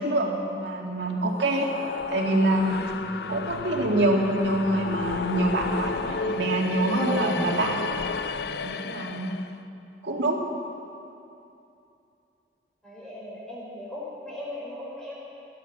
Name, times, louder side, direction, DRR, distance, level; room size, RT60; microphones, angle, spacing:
voice 1, 0.0-1.7 2.1-2.8 3.3-7.9 8.6-9.3 10.0-10.4, right 1 dB, 80° right, 0 dB, 2.1 m, -25 dB
sound 1, 1.2-9.5, left 4 dB, 65° left, 0.5 m, -32 dB
voice 2, 12.8-15.2, left 1 dB, 5° left, -6 dB, 4.2 m, -38 dB
18.0 x 11.5 x 6.6 m, 2.7 s
head